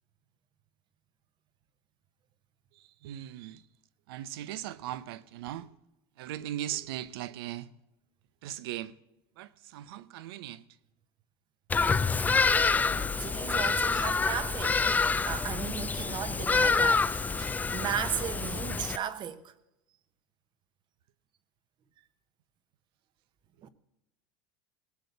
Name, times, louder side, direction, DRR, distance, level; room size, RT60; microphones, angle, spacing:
voice 1, 3.0-3.6 4.1-5.7 6.2-7.7 8.4-8.9 9.4-10.6 17.4-17.5, right 13 dB, 80° right, 0.7 m, -38 dB
Bird vocalization bird call bird song, 11.7-19.0, left 4 dB, 15° left, 0.5 m, -27 dB
voice 2, 12.9-14.9 15.3-17.3 17.7-19.5 23.6-23.7, right 9 dB, 40° right, 1.0 m, -36 dB
18.0 x 6.7 x 6.8 m
supercardioid pair, 125°, 12 cm